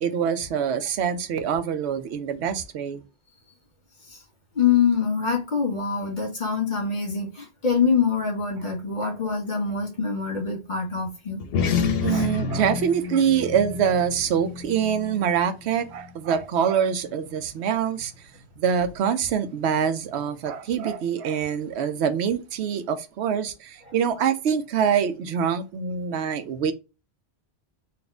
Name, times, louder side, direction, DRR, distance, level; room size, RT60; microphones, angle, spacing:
voice 1, 0.0-3.0 9.0-9.1 12.0-18.1 18.6-26.7, right 7 dB, 90° right, 0.9 m, -25 dB
voice 2, 4.5-11.4 12.1-12.2 23.8-23.9, left 6 dB, 45° left, 1.6 m, -25 dB
sound 1, 11.4-16.2, left 6 dB, 70° left, 0.9 m, -29 dB
4.1 x 2.5 x 3.3 m
omnidirectional pair, 1.1 m